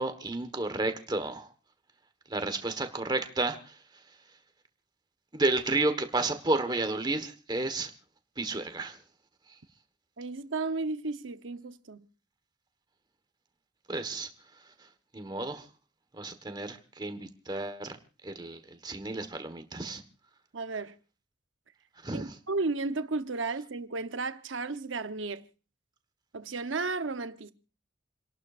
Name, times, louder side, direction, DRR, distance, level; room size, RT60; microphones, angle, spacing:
voice 1, 0.0-1.5 2.3-3.8 5.3-7.9 8.4-9.0 13.9-14.3 15.1-15.7 16.1-18.0 18.2-20.0 22.0-22.4, right 2 dB, 20° right, 1.3 m, -31 dB
voice 2, 10.2-12.0 20.5-21.0 22.1-25.4 26.3-27.5, right 3 dB, 80° right, 0.9 m, -33 dB
29.5 x 11.5 x 2.5 m
head